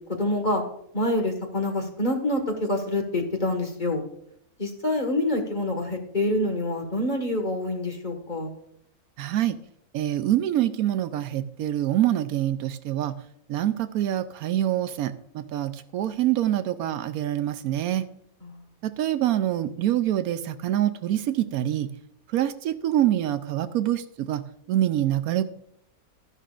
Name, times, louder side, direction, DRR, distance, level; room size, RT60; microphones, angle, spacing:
voice 1, 0.2-0.6 0.9-4.0 4.6-8.5 18.4-18.6, left 1 dB, 30° left, 2 dB, 1.8 m, -26 dB
voice 2, 9.2-9.5 9.9-13.1 13.5-18.0 18.8-21.9 22.3-24.4 24.7-25.4, right 12 dB, 80° right, 11 dB, 1.1 m, -25 dB
14.0 x 11.0 x 2.5 m, 0.71 s
omnidirectional pair, 1.6 m